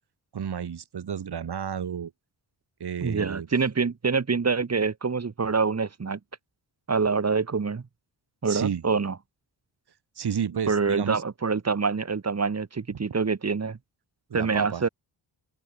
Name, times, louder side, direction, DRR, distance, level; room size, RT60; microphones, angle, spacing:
voice 1, 0.3-2.1 2.8-3.5 8.4-8.8 10.1-11.2 12.9-13.0 14.3-14.8, right 7 dB, 60° right, 4.9 m, -31 dB
voice 2, 3.0-6.2 6.9-7.8 8.4-9.1 10.7-13.8 14.3-14.9, right 5 dB, 35° right, 4.7 m, -26 dB
open air
wide cardioid pair, 165°, 44 cm